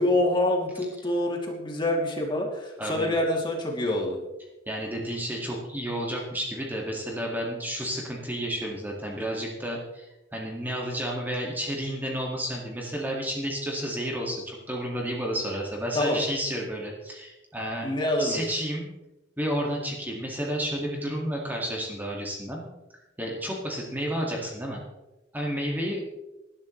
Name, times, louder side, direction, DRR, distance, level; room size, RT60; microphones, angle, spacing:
voice 1, 0.0-4.2 15.9-16.2 17.8-18.4, left 1 dB, 25° left, 0 dB, 2.7 m, -26 dB
voice 2, 2.8-3.1 4.7-17.9 18.2-18.8 19.4-22.6 23.2-24.8 25.3-26.0, equal, 10° right, -2 dB, 2.0 m, -31 dB
19.5 x 11.5 x 3.2 m, 1.0 s
head